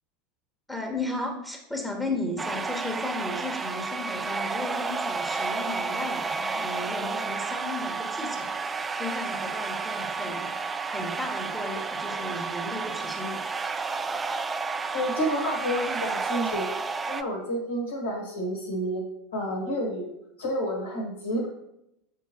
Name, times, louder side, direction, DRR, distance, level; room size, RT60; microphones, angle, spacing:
voice 1, 0.7-8.5 9.0-13.5, left 2 dB, 5° left, 1 dB, 1.1 m, -35 dB
sound 1, 2.4-17.2, right 4 dB, 15° right, 0.3 m, -31 dB
voice 2, 14.9-16.7 17.1-19.0 19.3-20.1 20.4-21.5, equal, 70° left, 0 dB, 1.3 m, -29 dB
7.2 x 4.5 x 2.9 m, 0.82 s
figure-of-eight pair, 80°, 0 cm